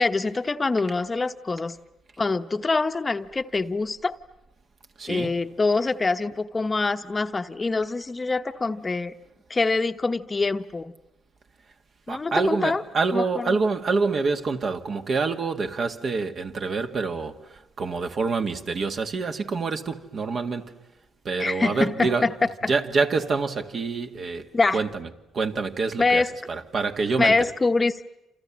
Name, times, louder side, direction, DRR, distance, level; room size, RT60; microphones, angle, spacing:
voice 1, 0.0-1.8 2.2-4.2 5.1-9.1 9.5-10.9 12.1-12.8 13.1-13.6 21.4-22.3 22.6-22.7 24.5-24.8 26.0-26.3 27.2-28.0, left 3 dB, 25° left, 1.0 m, -24 dB
voice 2, 5.0-5.3 12.1-20.7 21.2-22.3 22.7-25.1 25.3-27.5, right 4 dB, 50° right, 1.9 m, -26 dB
29.0 x 28.0 x 7.4 m
cardioid pair, 90°, 0 cm